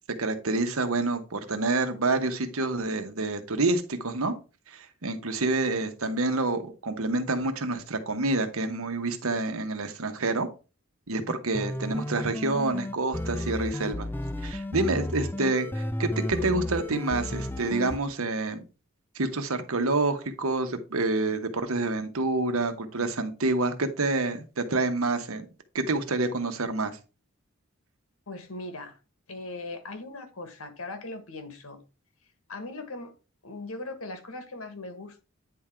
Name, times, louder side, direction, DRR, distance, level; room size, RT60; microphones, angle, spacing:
voice 1, 0.2-4.3 4.7-10.5 11.1-14.1 14.4-18.6 19.1-25.5 25.7-27.0, right 2 dB, 80° right, 1.1 m, -28 dB
sound 1, 11.3-18.0, left 1 dB, 10° left, 0.4 m, -33 dB
voice 2, 28.3-29.0 29.3-31.8 32.5-33.1 33.4-35.2, left 2 dB, 80° left, 1.5 m, -39 dB
9.4 x 3.7 x 4.4 m
head